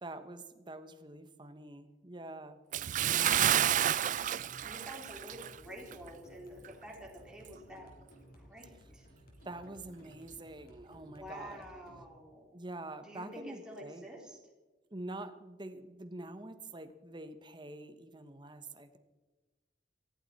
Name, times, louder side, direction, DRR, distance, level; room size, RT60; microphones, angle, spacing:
voice 1, 0.0-2.6 3.1-3.5 9.4-11.6 12.5-14.1 14.9-19.0, right 2 dB, 25° right, 10 dB, 1.1 m, -46 dB
Bathtub (filling or washing) / Splash splatter, 2.7-5.6 5.9-6.1 6.6-6.7, right 11 dB, 45° right, 0.4 m, -30 dB
voice 2, 3.0-3.8 4.6-7.9 8.3-9.1 11.0-12.6 13.0-14.4, equal, 5° right, -3 dB, 3.8 m, -49 dB
sound 1, 3.4-12.0, equal, 55° left, 3.3 m, -57 dB
19.0 x 15.0 x 4.2 m, 1.2 s
head